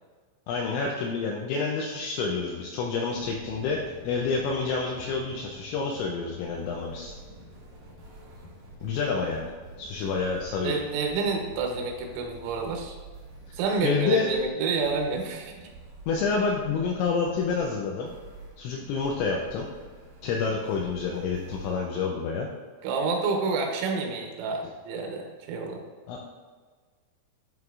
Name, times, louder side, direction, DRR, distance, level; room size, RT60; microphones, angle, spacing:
voice 1, 0.5-7.2 8.8-9.5 9.8-10.8 13.8-14.3 16.1-18.1 18.6-19.7 20.2-22.5 26.1-26.3, left 4 dB, 85° left, 0 dB, 2.7 m, -28 dB
sound 1, 3.1-12.9, left 2 dB, 65° left, 2.6 m, -50 dB
sound 2, 6.4-21.7, right 3 dB, 65° right, 1.7 m, -48 dB
voice 2, 10.6-13.0 13.5-15.5 22.8-25.8, right 4 dB, 85° right, 2 dB, 3.3 m, -29 dB
10.5 x 3.8 x 2.4 m, 1.5 s
omnidirectional pair, 5.7 m